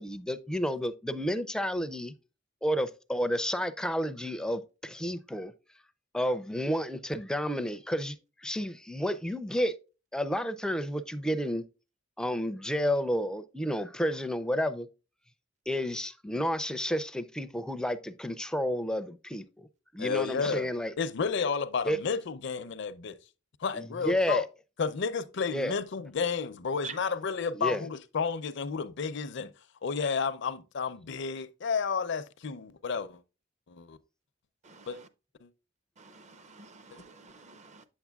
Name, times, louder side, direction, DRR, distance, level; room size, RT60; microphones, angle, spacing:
voice 1, 0.0-2.1 2.6-5.5 6.1-8.2 8.4-9.7 10.1-11.6 12.2-14.9 15.7-19.7 19.9-20.9 21.9-22.0 23.7-24.4 25.5-25.7 27.5-27.8, equal, 5° left, 0.4 m, -31 dB
voice 2, 20.0-20.7 21.0-23.2 23.6-24.5 24.8-29.5 29.8-33.2 33.7-34.0 34.9-35.0 35.4-35.5 37.0-37.1, left 5 dB, 65° left, 0.5 m, -31 dB
voice 3, 34.6-35.1 36.0-37.9, right 4 dB, 35° right, 0.6 m, -47 dB
8.5 x 7.1 x 2.3 m
head